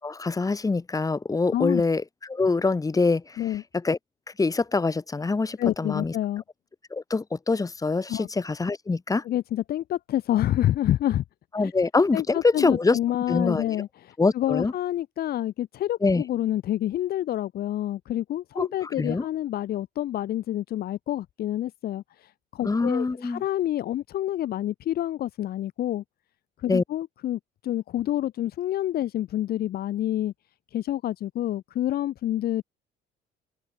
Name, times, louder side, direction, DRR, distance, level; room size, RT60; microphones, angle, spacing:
voice 1, 0.0-2.0 2.3-3.4 3.8-4.0 4.4-6.1 6.9-9.2 11.5-13.0 13.3-13.6 14.2-14.7 16.0-16.2 18.6-18.7 19.0-19.2 22.6-23.4 26.7-26.8, left 3 dB, 20° left, 6.7 m, -24 dB
voice 2, 1.5-1.8 3.4-3.6 5.6-6.4 8.1-8.3 9.2-11.2 11.6-11.7 12.1-26.0 26.6-30.3 30.7-32.6, left 12 dB, 65° left, 4.5 m, -28 dB
open air
cardioid pair, 110°, 17 cm